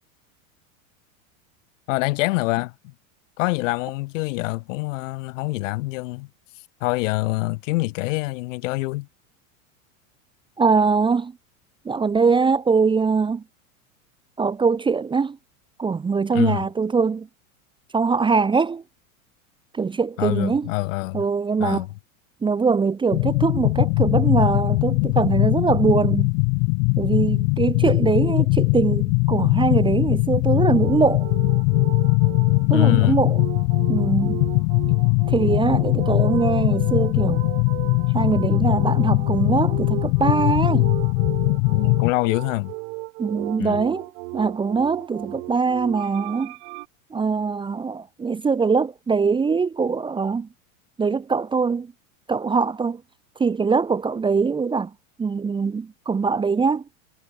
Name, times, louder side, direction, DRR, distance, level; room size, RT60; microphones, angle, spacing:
voice 1, 1.9-2.9 3.4-6.3 6.5-9.1 16.3-16.7 20.2-21.3 21.6-21.9 32.7-33.3 41.7-42.7 43.6-43.8, left 22 dB, 65° left, 4.4 m, -25 dB
voice 2, 10.6-11.3 11.8-13.4 14.4-15.4 15.8-17.3 17.9-18.8 19.7-20.7 21.1-21.8 22.4-26.3 27.0-31.3 32.7-33.4 33.9-34.4 35.3-37.5 38.1-40.9 43.2-44.0 44.3-46.5 47.1-50.5 51.0-51.9 52.3-53.0 53.4-54.9 55.2-56.8, right 5 dB, 10° right, 1.3 m, -22 dB
sound 1, 23.1-42.1, left 40 dB or more, 35° left, 0.5 m, -20 dB
sound 2, 30.5-46.9, right 33 dB, 55° right, 6.3 m, -35 dB
supercardioid pair, 145°, 41 cm